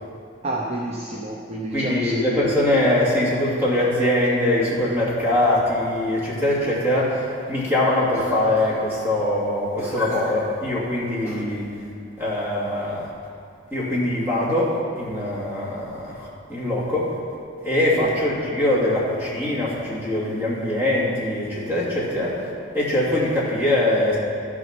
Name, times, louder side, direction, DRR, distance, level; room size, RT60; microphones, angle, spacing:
voice 1, 0.4-2.6 11.0-11.2 17.9-18.1, right 2 dB, 35° right, -3 dB, 0.8 m, -29 dB
voice 2, 1.7-11.7 12.2-13.1 13.7-17.1 17.6-22.5 22.7-24.2, left 1 dB, 10° right, -7 dB, 2.5 m, -22 dB
12.5 x 6.2 x 6.0 m, 2.4 s
head